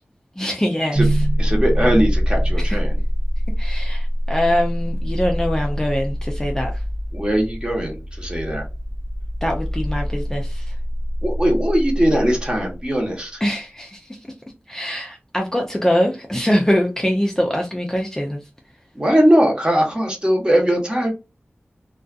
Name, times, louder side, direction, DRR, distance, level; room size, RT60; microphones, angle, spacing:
voice 1, 0.4-1.3 2.6-2.8 3.6-6.8 9.4-10.8 13.4-14.3 14.7-18.5, equal, 15° left, 0.4 m, -23 dB
sound 1, 0.9-13.0, equal, 45° right, 0.6 m, -24 dB
voice 2, 1.4-3.0 7.1-8.6 11.2-13.4 18.9-21.1, equal, 20° right, 1.0 m, -20 dB
2.4 x 2.3 x 2.4 m
wide cardioid pair, 70°, 4 cm